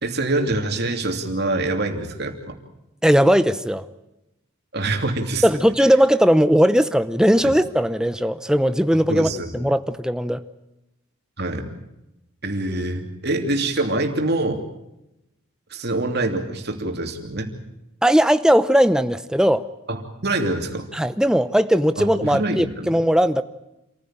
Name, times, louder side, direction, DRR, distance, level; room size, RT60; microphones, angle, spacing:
voice 1, 0.0-2.6 4.7-5.4 7.4-7.5 9.1-9.5 11.4-11.7 12.4-14.6 15.7-17.5 19.9-20.9 22.0-22.9, right 2 dB, 50° right, 4 dB, 2.9 m, -25 dB
voice 2, 3.0-3.9 5.4-10.4 18.0-19.6 20.9-23.4, equal, 5° right, 11 dB, 0.7 m, -18 dB
27.0 x 15.5 x 8.9 m, 0.91 s
head